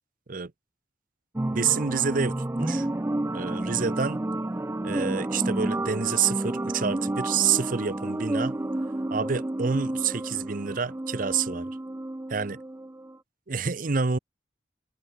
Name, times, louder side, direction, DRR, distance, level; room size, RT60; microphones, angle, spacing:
sound 1, 1.4-13.2, right 1 dB, 15° right, 0.4 m, -30 dB
voice 1, 1.5-2.9 3.3-4.2 4.8-8.6 9.1-11.7 12.3-12.6 13.5-14.2, right 6 dB, 50° right, 0.8 m, -28 dB
head